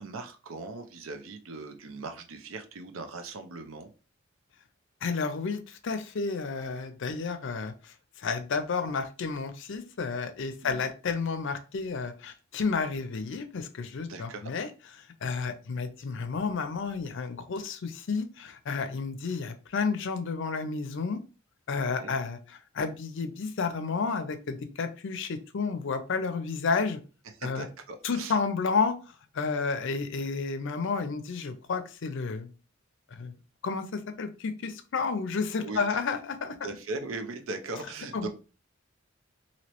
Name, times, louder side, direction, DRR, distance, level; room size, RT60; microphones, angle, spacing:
voice 1, 0.0-3.9 10.6-10.9 14.1-14.5 21.8-22.1 27.4-28.4 35.6-36.0 36.6-38.3, right 3 dB, 75° right, 6 dB, 0.6 m, -39 dB
voice 2, 5.0-14.7 15.2-21.2 21.7-27.0 27.4-27.7 28.0-29.0 29.3-32.5 33.1-33.3 33.6-36.6 38.1-38.3, left 4 dB, 65° left, 9 dB, 0.5 m, -31 dB
2.9 x 2.8 x 3.0 m, 0.34 s
head